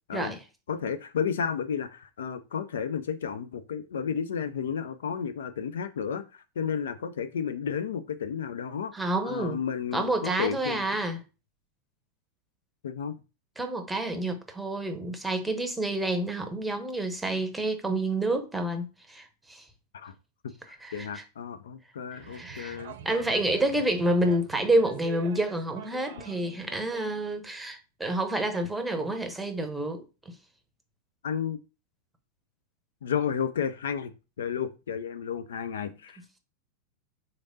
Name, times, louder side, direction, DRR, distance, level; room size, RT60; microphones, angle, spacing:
voice 1, 0.7-8.9 9.2-10.8 12.8-13.2 19.9-20.1 20.4-23.0 31.2-31.6 33.0-36.4, left 7 dB, 70° left, 0.3 m, -32 dB
voice 2, 8.9-9.6 9.9-11.2 13.6-19.6 20.8-21.2 22.3-22.8 23.0-30.3, right 1 dB, 5° right, 0.8 m, -29 dB
sound 1, 22.2-27.1, right 9 dB, 60° right, 0.6 m, -45 dB
3.8 x 3.2 x 2.7 m
figure-of-eight pair, 95°, 0 cm